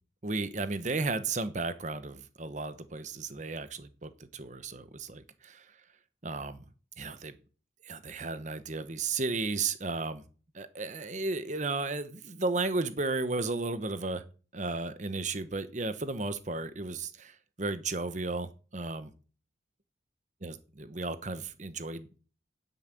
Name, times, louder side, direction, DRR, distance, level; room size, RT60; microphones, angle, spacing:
voice 1, 0.2-5.7 6.2-6.7 7.0-7.4 7.8-10.2 10.5-14.2 14.5-19.1 20.4-22.2, right 3 dB, 40° right, 12 dB, 1.0 m, -34 dB
9.8 x 8.2 x 8.3 m, 0.39 s
head